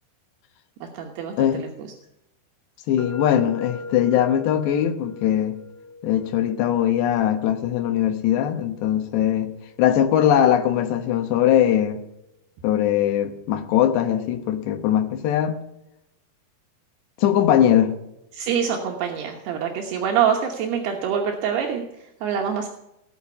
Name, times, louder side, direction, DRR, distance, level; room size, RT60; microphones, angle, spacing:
voice 1, 0.8-1.9 18.3-22.7, right 8 dB, 75° right, 3.1 m, -25 dB
voice 2, 2.9-5.6 6.0-12.0 12.6-15.6 17.2-18.0, left 10 dB, 85° left, 3.3 m, -21 dB
sound 1, 3.0-10.8, left 3 dB, 60° left, 3.1 m, -41 dB
19.0 x 6.8 x 8.2 m
omnidirectional pair, 4.9 m